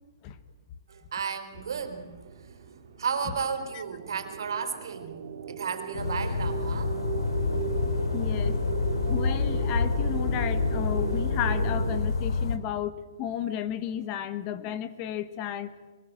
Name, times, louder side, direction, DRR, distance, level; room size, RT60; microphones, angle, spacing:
voice 1, 0.9-2.1 2.4-2.6 3.0-7.0, right 6 dB, 75° right, 7 dB, 4.0 m, -33 dB
sound 1, 1.5-12.0, right 6 dB, 50° right, 3.5 m, -36 dB
sound 2, 5.9-12.6, left 5 dB, 90° left, 2.8 m, -28 dB
voice 2, 8.1-8.6 9.0-12.9 13.2-15.7, left 10 dB, 25° left, 12 dB, 1.0 m, -33 dB
22.5 x 20.5 x 7.7 m, 1.3 s
hypercardioid pair, 170°, 2 cm